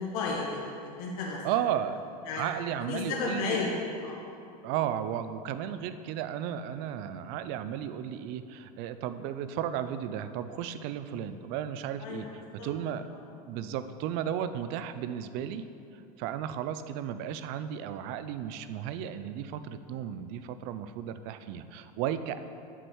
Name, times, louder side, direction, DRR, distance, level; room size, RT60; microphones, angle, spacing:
voice 1, 0.0-1.4 2.3-2.5 2.9-4.2 12.0-12.3 12.6-12.7, left 4 dB, 65° left, -3 dB, 1.2 m, -33 dB
voice 2, 1.4-2.0 2.4-3.6 4.6-13.0 13.5-15.6 16.2-22.4, right 10 dB, 55° right, 12 dB, 0.5 m, -34 dB
8.0 x 6.0 x 4.7 m, 2.6 s
supercardioid pair, 125°, 20 cm